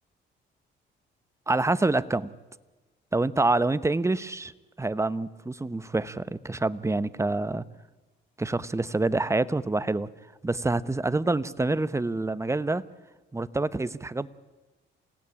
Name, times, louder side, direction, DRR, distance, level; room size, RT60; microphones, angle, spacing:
voice 1, 1.5-2.3 3.1-4.5 4.8-7.7 8.4-10.1 10.4-12.8 13.3-14.3, right 2 dB, 15° right, 16 dB, 1.0 m, -26 dB
27.5 x 17.0 x 9.9 m, 1.2 s
cardioid pair, 90°, 20 cm